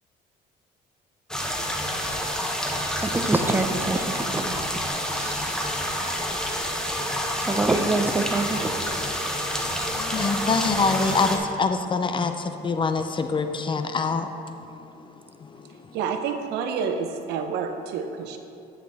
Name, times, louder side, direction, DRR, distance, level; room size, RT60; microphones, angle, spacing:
sound 1, 1.3-11.4, equal, 5° left, 1.0 m, -28 dB
voice 1, 3.0-4.6 5.1-5.6 7.5-8.7, right 2 dB, 10° right, 6 dB, 0.6 m, -25 dB
voice 2, 9.9-14.3, left 4 dB, 30° left, 8 dB, 0.6 m, -25 dB
voice 3, 15.9-18.4, right 6 dB, 85° right, 6 dB, 0.8 m, -28 dB
10.0 x 8.6 x 3.5 m, 2.6 s
cardioid pair, 110°, 17 cm